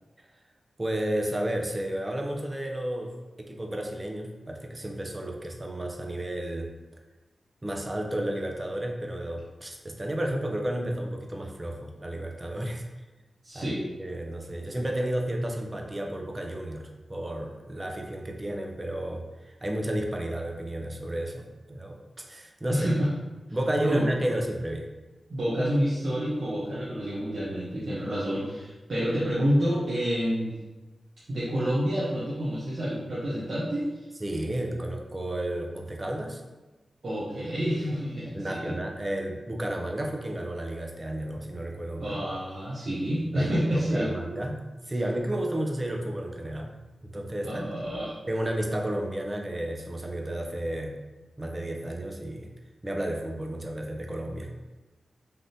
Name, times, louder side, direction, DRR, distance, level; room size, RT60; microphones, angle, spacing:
voice 1, 0.8-6.7 7.6-12.8 13.5-13.7 14.0-22.9 23.5-24.9 34.2-36.4 38.3-42.2 43.3-46.7 47.0-47.7 48.3-51.0 51.4-52.5 52.8-54.5, right 1 dB, 25° right, 2 dB, 0.5 m, -32 dB
voice 2, 13.4-13.9 22.7-23.1 23.8-24.0 25.3-30.5 31.3-34.1 37.0-38.7 42.0-44.1 47.4-48.1, equal, 65° right, -9 dB, 0.8 m, -28 dB
3.4 x 2.4 x 2.7 m, 1.1 s
cardioid pair, 55°, 0 cm